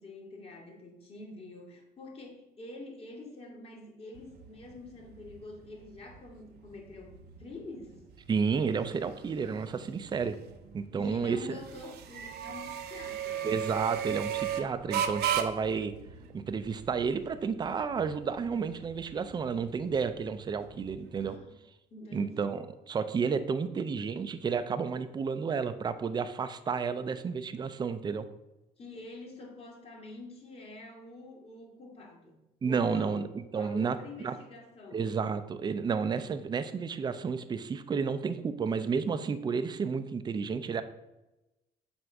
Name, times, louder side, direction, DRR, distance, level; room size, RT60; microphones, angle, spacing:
voice 1, 0.0-8.0 10.9-13.5 21.2-21.5 21.9-22.5 28.8-32.4 32.7-33.3 33.5-35.1, left 2 dB, 35° left, 0 dB, 1.8 m, -46 dB
sound 1, 4.1-21.3, right 9 dB, 70° right, 0.7 m, -38 dB
voice 2, 8.3-10.4 10.7-11.6 13.4-15.9 16.3-21.4 22.1-28.3 32.6-34.0 34.2-34.4 34.9-40.8, right 5 dB, 25° right, 11 dB, 0.5 m, -31 dB
7.7 x 2.6 x 5.8 m, 0.97 s
cardioid pair, 110°, 17 cm